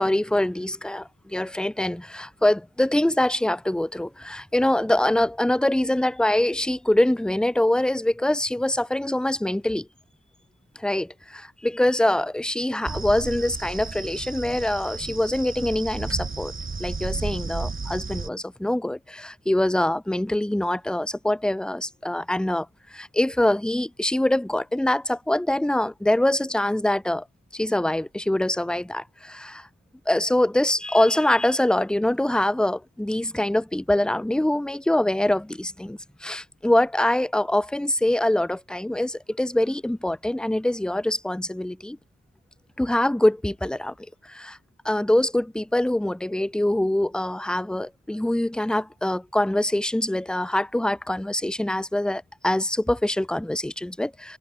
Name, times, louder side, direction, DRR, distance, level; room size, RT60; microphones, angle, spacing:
voice 1, 0.0-9.9 10.8-16.5 16.8-22.7 22.9-27.2 27.5-29.6 30.1-42.0 42.8-43.9 44.3-44.6 44.8-54.4, left 1 dB, 5° left, 0.4 m, -24 dB
sound 1, 12.8-18.3, right 4 dB, 40° right, 1.6 m, -33 dB
wide cardioid pair, 80°, 31 cm